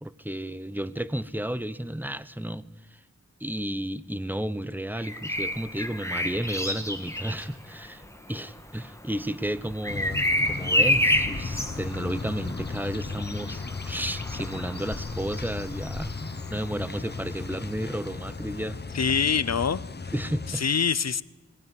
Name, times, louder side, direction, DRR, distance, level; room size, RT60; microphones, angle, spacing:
voice 1, 0.0-2.6 2.9-3.0 3.4-8.0 8.3-10.2 10.5-18.8 20.1-20.6, right 1 dB, 5° right, 15 dB, 0.9 m, -32 dB
Bird vocalization bird call bird song, 5.0-16.8 18.5-18.7, left 1 dB, 10° left, 2.0 m, -30 dB
sound 1, 9.9-20.6, left 4 dB, 35° left, 0.8 m, -36 dB
voice 2, 18.9-19.8 20.5-21.2, left 6 dB, 65° left, 18 dB, 0.7 m, -24 dB
20.0 x 18.5 x 9.6 m, 1.2 s
wide cardioid pair, 75°, 29 cm